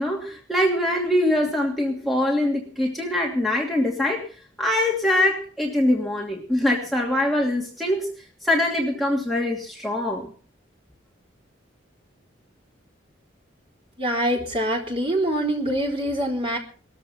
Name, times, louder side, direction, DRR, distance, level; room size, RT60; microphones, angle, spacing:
voice 1, 0.0-4.2 4.6-8.1 8.4-10.3, left 1 dB, ahead, -2 dB, 2.7 m, -23 dB
voice 2, 14.0-16.6, right 1 dB, 30° right, 0 dB, 4.0 m, -24 dB
20.5 x 14.0 x 4.3 m, 0.40 s
head